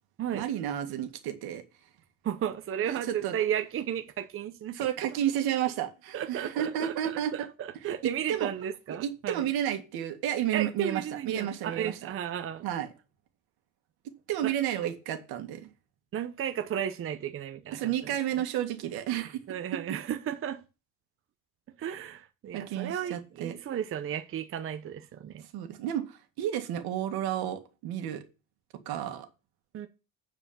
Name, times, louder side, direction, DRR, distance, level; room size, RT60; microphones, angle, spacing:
voice 1, 0.3-1.6 2.9-3.3 4.7-7.3 7.8-8.5 8.9-12.0 12.6-12.9 14.3-15.7 17.7-19.4 22.5-23.6 25.5-28.2 28.9-29.3, right 11 dB, 75° right, 2.1 m, -31 dB
voice 2, 2.2-4.8 6.1-9.4 10.5-12.7 14.4-14.5 16.1-18.1 19.5-20.6 21.8-25.5 29.7-29.9, right 9 dB, 35° right, 0.8 m, -34 dB
9.0 x 4.9 x 7.3 m
cardioid pair, 135°, 39 cm